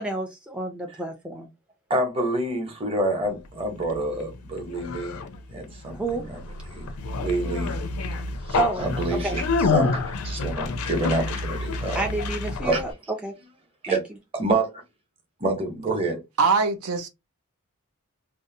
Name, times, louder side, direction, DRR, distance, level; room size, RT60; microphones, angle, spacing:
voice 1, 0.0-1.5 5.9-6.3 8.6-9.4 11.9-13.3 13.9-14.0, right 2 dB, 5° right, 0.3 m, -30 dB
voice 2, 1.9-5.2 5.5-6.0 6.7-6.8 7.2-7.7 8.8-9.4 9.7-12.0 12.6-12.8 13.8-14.0 14.3-14.7 15.4-16.2, right 2 dB, 25° right, 0.8 m, -27 dB
Conversation, 3.4-12.9, left 3 dB, 75° left, 0.4 m, -29 dB
voice 3, 16.4-17.1, right 4 dB, 75° right, 0.5 m, -22 dB
2.6 x 2.0 x 2.6 m
head